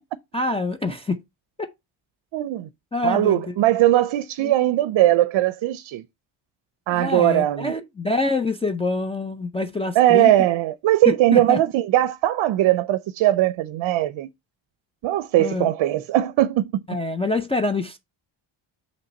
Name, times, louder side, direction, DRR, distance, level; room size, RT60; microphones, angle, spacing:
voice 1, 0.3-1.2 1.6-1.7 2.9-3.4 4.4-4.5 6.9-10.3 11.1-11.6 15.4-15.7 16.9-18.0, left 3 dB, 15° left, 0.4 m, -25 dB
voice 2, 2.3-2.7 3.0-6.0 6.9-7.7 10.0-14.3 15.0-16.8, right 14 dB, 70° right, 0.6 m, -20 dB
5.7 x 3.2 x 5.2 m
cardioid pair, 145°, 47 cm